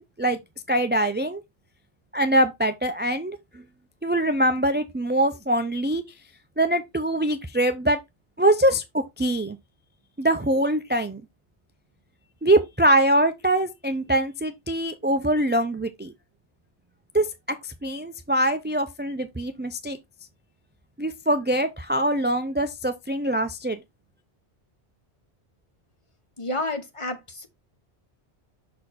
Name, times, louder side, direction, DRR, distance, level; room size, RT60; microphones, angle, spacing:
voice 1, 0.7-1.4 2.1-3.6 4.0-6.0 6.6-8.0 8.4-9.6 10.2-11.2 12.4-16.1 17.1-20.0 21.0-23.8, right 1 dB, 15° right, 0.3 m, -23 dB
voice 2, 26.4-27.5, left 2 dB, 30° left, 1.1 m, -30 dB
6.5 x 4.3 x 4.1 m
omnidirectional pair, 1.2 m